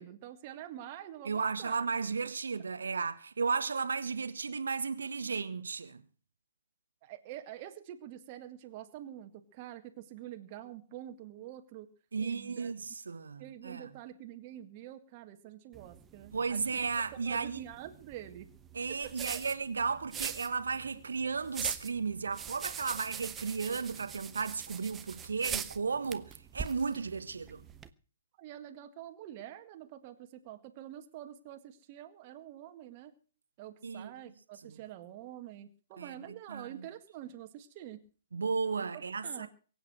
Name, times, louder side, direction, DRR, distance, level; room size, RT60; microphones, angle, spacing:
voice 1, 0.0-1.8 7.0-11.9 12.2-12.7 13.4-16.9 17.3-18.5 19.0-19.1 28.4-33.1 33.6-38.0 38.8-39.5, right 12 dB, 35° right, 1.9 m, -47 dB
voice 2, 1.2-6.0 12.1-13.9 16.3-17.6 18.7-27.6 33.8-34.1 34.6-34.8 36.0-36.1 36.5-36.7 38.3-39.5, right 5 dB, 70° right, 1.3 m, -34 dB
sound 1, 15.7-27.9, right 8 dB, 15° right, 1.0 m, -43 dB
23.0 x 8.9 x 6.3 m
figure-of-eight pair, 120°, 0 cm